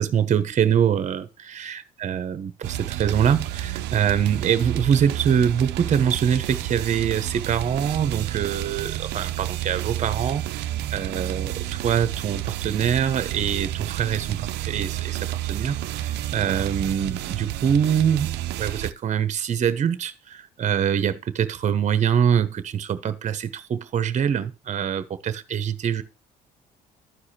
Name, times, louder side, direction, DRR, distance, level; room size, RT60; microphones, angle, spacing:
voice 1, 0.0-26.0, right 8 dB, 45° right, 1.1 m, -24 dB
sound 1, 2.6-18.9, right 14 dB, 85° right, 0.6 m, -30 dB
13.0 x 4.9 x 4.3 m
cardioid pair, 110°, 17 cm